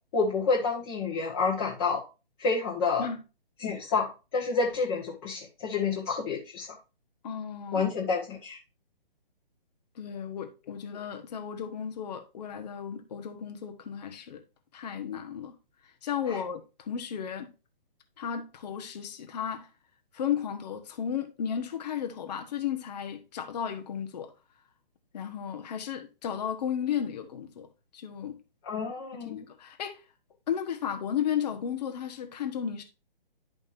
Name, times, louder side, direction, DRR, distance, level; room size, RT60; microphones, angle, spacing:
voice 1, 0.1-2.0 2.4-3.1 3.6-6.8 7.7-8.6 16.3-16.4 28.6-29.4, left 4 dB, 25° left, 1.5 m, -29 dB
voice 2, 7.2-7.9 9.9-14.4 14.7-15.6 15.8-17.5 18.2-19.7 20.1-24.3 25.1-27.7 27.9-28.4 29.2-30.0 30.5-32.8, left 8 dB, 45° left, 1.3 m, -34 dB
11.0 x 5.2 x 2.6 m
hypercardioid pair, 145°, 29 cm